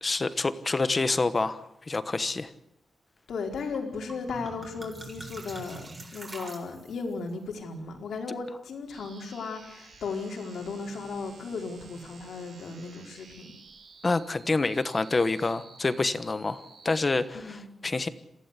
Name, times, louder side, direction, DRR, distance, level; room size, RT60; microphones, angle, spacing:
voice 1, 0.0-2.5 14.0-18.1, left 3 dB, 25° left, 13 dB, 1.1 m, -27 dB
voice 2, 3.3-5.9 6.1-13.5 17.3-17.6, left 4 dB, 80° left, 3 dB, 4.4 m, -36 dB
sound 1, 3.7-3.8 4.1-7.1, right 2 dB, 20° right, 4.7 m, -43 dB
sound 2, 8.9-17.2, right 4 dB, 70° right, 6.7 m, -52 dB
27.5 x 15.5 x 8.3 m, 0.78 s
wide cardioid pair, 180°, 0 cm